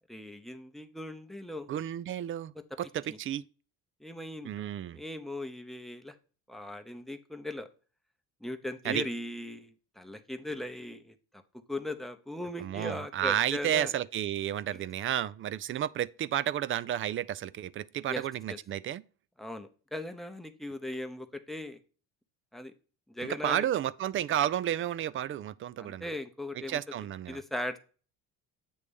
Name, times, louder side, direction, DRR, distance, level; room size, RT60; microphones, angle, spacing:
voice 1, 0.1-1.7 2.5-2.6 3.1-3.2 4.0-4.7 4.9-6.1 6.5-7.7 8.4-11.4 11.7-13.9 14.7-14.8 18.1-18.6 19.4-21.8 22.5-22.7 23.1-23.7 25.8-26.8 27.3-27.8, left 1 dB, ahead, 0.8 m, -39 dB
voice 2, 1.7-2.5 2.8-3.4 4.4-5.0 8.8-9.0 12.6-19.0 23.2-26.1 26.6-27.4, right 11 dB, 35° right, 0.4 m, -32 dB
8.4 x 3.2 x 5.2 m
cardioid pair, 105°, 36 cm